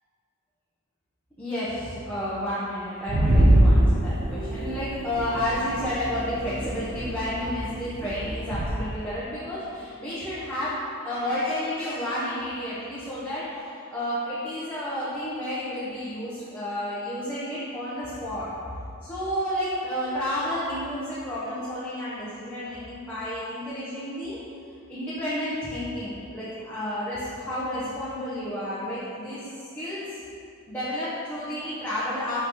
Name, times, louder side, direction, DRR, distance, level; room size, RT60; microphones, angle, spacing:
voice 1, 1.4-18.5 19.0-24.4 24.9-30.2 30.7-32.4, left 1 dB, 10° left, -11 dB, 0.8 m, -31 dB
sound 1, 3.1-8.7, right 1 dB, 65° right, 0.7 m, -24 dB
5.7 x 5.6 x 3.0 m, 2.5 s
head